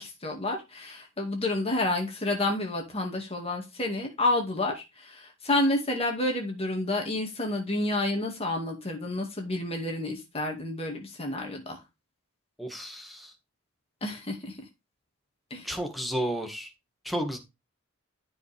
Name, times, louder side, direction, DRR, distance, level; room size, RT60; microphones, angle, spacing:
voice 1, 0.0-11.8 14.0-14.6 15.5-15.7, left 2 dB, 30° left, 2.3 m, -29 dB
voice 2, 12.6-13.3 15.6-16.7 17.0-17.4, right 1 dB, ahead, 1.9 m, -32 dB
13.0 x 5.3 x 3.5 m
head